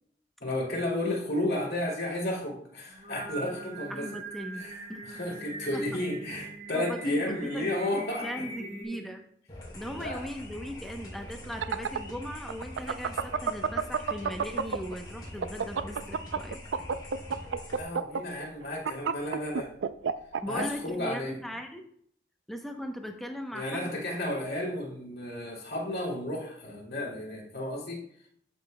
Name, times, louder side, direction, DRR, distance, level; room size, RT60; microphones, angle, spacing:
voice 1, 0.4-4.1 4.5-4.8 5.1-8.4 8.8-9.1 9.9-10.2 17.7-19.7 20.5-21.4 23.5-28.1, left 1 dB, 55° left, -2 dB, 2.5 m, -32 dB
Singing, 2.9-8.8, right 3 dB, 35° right, 1.4 m, -42 dB
voice 2, 3.9-5.1 5.7-5.8 6.7-7.7 8.2-9.2 9.7-16.6 20.4-21.8 22.5-23.9, equal, ahead, 3 dB, 0.7 m, -39 dB
sound 1, 9.5-17.8, left 1 dB, 25° left, 2.4 m, -44 dB
sound 2, 11.4-14.9 15.3-20.6, right 6 dB, 90° right, 0.4 m, -29 dB
11.5 x 6.2 x 2.2 m, 0.64 s
head